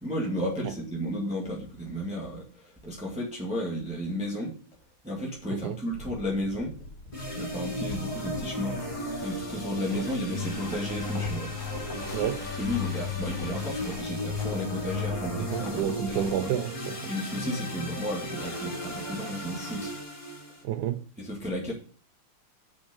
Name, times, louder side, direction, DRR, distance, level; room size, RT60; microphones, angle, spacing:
voice 1, 0.0-2.4 2.8-4.5 5.0-6.7 7.4-8.8 9.2-11.5 12.6-16.5 17.1-19.9 21.2-21.7, equal, 5° right, 1.9 m, -33 dB
sound 1, 5.9-15.3, left 2 dB, 75° left, 3.7 m, -45 dB
sound 2, 7.1-20.6, left 2 dB, 15° left, 3.1 m, -35 dB
sound 3, 9.8-16.5, left 1 dB, 45° left, 2.1 m, -45 dB
voice 2, 9.8-10.1 12.1-12.4 15.4-17.1 20.6-21.0, right 9 dB, 75° right, 0.9 m, -30 dB
6.4 x 5.7 x 6.4 m
omnidirectional pair, 2.3 m